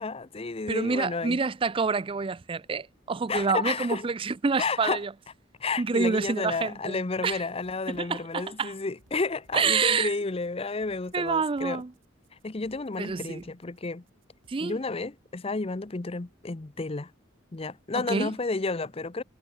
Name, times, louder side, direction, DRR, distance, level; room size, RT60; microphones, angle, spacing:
voice 1, 0.0-1.4 3.3-4.1 4.6-5.0 5.6-11.8 12.4-14.0 14.6-17.1 17.5-19.2, left 3 dB, 30° left, 0.7 m, -31 dB
voice 2, 0.7-5.1 5.8-7.0 7.2-7.4 7.9-8.7 9.5-10.2 11.1-11.9 13.0-13.4 14.5-14.8 18.0-18.3, right 4 dB, 25° right, 0.4 m, -27 dB
sound 1, 7.2-14.5, right 1 dB, 80° right, 6.4 m, -63 dB
head